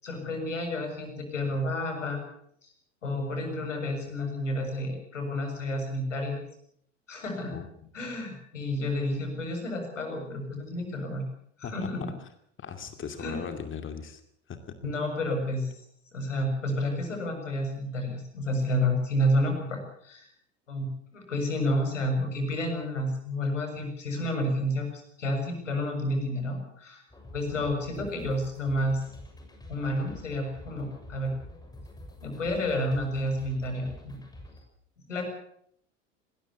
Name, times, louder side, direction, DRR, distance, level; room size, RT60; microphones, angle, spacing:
voice 1, 0.0-2.2 2.6-2.7 3.0-6.4 7.1-7.6 7.9-11.2 11.6-12.0 13.2-13.4 14.8-15.8 16.1-20.3 20.7-27.0 27.3-29.0 29.7-31.3 32.2-34.2 35.1-35.2, left 1 dB, 80° left, 4 dB, 7.0 m, -30 dB
voice 2, 7.5-7.9 11.6-11.9 12.6-14.2 14.5-14.6, left 7 dB, 35° left, 8 dB, 2.6 m, -38 dB
sound 1, 27.1-34.6, left 1 dB, 10° left, 6.7 m, -47 dB
20.0 x 17.0 x 8.4 m, 0.68 s
figure-of-eight pair, 75°, 36 cm